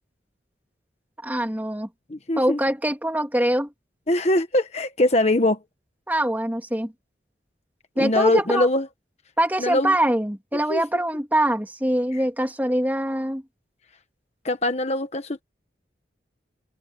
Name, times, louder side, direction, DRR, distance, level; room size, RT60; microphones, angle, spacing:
voice 1, 1.2-1.9 2.4-3.7 6.1-6.9 8.0-8.7 9.4-13.4, right 1 dB, 10° right, 2.7 m, -23 dB
voice 2, 2.1-2.6 4.1-5.6 8.0-8.9 9.6-10.0 10.7-10.8 12.1-12.2 14.4-15.4, left 1 dB, 40° left, 1.4 m, -22 dB
open air
head